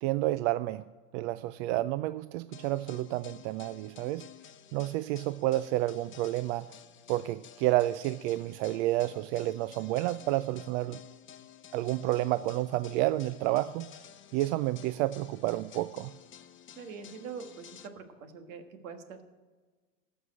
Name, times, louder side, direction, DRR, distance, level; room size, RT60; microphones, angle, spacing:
voice 1, 0.0-0.8 1.1-4.2 4.7-6.7 7.1-11.0 11.7-13.9 14.3-16.1, right 16 dB, 65° right, 15 dB, 0.5 m, -30 dB
sound 1, 2.5-17.9, left 10 dB, 30° left, 0.8 m, -52 dB
voice 2, 16.8-19.2, right 6 dB, 80° right, 7 dB, 1.6 m, -44 dB
14.5 x 5.5 x 8.7 m, 1.3 s
supercardioid pair, 105°, 39 cm